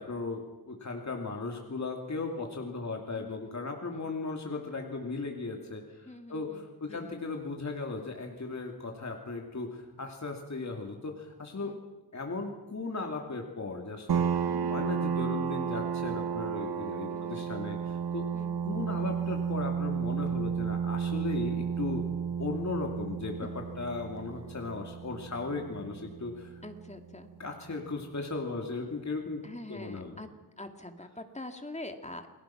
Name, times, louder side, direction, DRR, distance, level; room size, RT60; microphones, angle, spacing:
voice 1, 0.0-11.7 12.1-18.3 18.6-22.0 22.4-23.5 23.8-26.5 27.4-29.4 29.7-30.2, left 3 dB, 45° left, 2 dB, 2.8 m, -37 dB
voice 2, 3.1-3.6 3.9-4.1 6.0-7.1 11.6-11.8 14.4-14.8 17.1-17.4 18.3-18.6 23.4-23.5 26.6-27.3 29.4-30.3 30.6-32.3, left 1 dB, 20° left, 6 dB, 2.2 m, -45 dB
sound 1, 14.1-27.4, right 7 dB, 80° right, 1.0 m, -33 dB
29.5 x 21.0 x 6.0 m, 1.1 s
wide cardioid pair, 115°, 37 cm